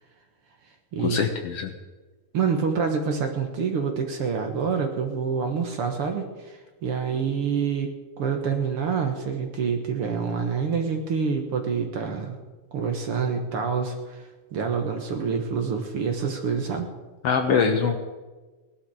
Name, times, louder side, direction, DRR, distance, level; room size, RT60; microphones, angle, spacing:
voice 1, 1.0-1.7 17.2-18.0, left 6 dB, 60° left, 5 dB, 1.8 m, -23 dB
voice 2, 2.3-12.4 12.7-16.9, right 6 dB, 55° right, 4 dB, 1.9 m, -27 dB
18.5 x 12.0 x 4.9 m, 1.2 s
omnidirectional pair, 3.5 m